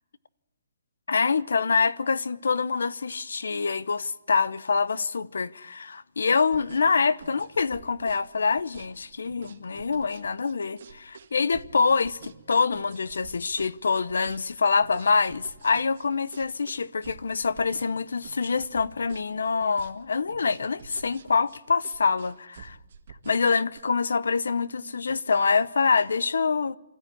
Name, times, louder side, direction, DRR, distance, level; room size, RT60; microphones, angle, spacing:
voice 1, 1.1-22.8 23.3-26.8, left 5 dB, 90° left, 0.8 m, -25 dB
sound 1, 6.4-23.8, right 6 dB, 50° right, 1.9 m, -48 dB
25.0 x 13.5 x 10.0 m
hypercardioid pair, 170°, 0 cm